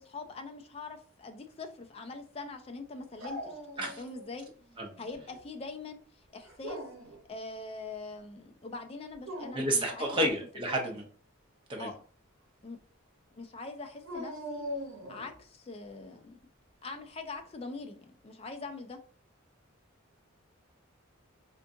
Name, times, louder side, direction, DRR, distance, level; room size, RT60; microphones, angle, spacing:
voice 1, 0.0-4.4 5.0-6.8 7.3-10.3 10.8-10.9 11.8-12.0 12.6-12.8 13.3-14.6 15.1-16.4 16.8-19.0, left 3 dB, 25° left, 0.3 m, -43 dB
Dog, 3.2-4.3 4.7-5.4 6.4-7.2 9.1-9.8 14.0-15.4, equal, 65° right, 0.9 m, -41 dB
voice 2, 9.5-11.0 11.7-11.9, right 1 dB, 25° right, 0.6 m, -30 dB
3.5 x 2.5 x 2.6 m
head